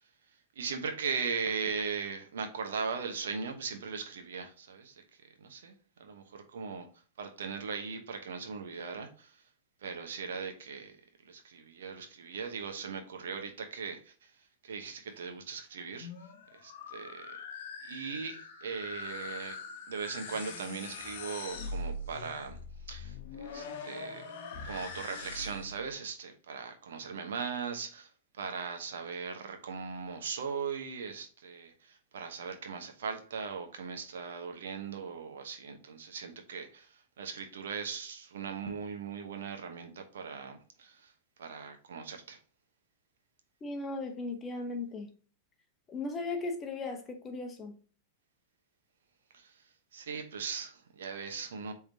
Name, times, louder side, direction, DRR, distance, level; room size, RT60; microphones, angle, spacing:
voice 1, 0.6-5.0 5.4-5.7 6.0-6.9 7.2-9.4 9.8-10.9 11.2-14.3 14.6-16.1 16.5-17.3 17.8-19.6 19.9-22.6 22.9-24.3 24.6-28.1 28.4-41.1 41.4-42.4 49.3-49.6 49.9-51.7, right 5 dB, 85° right, 1.0 m, -39 dB
sound 1, 15.8-25.8, left 3 dB, 65° left, 0.9 m, -43 dB
voice 2, 43.6-45.1 45.9-47.8, left 3 dB, 25° left, 1.0 m, -37 dB
4.7 x 3.5 x 2.8 m
hypercardioid pair, 125°, 0 cm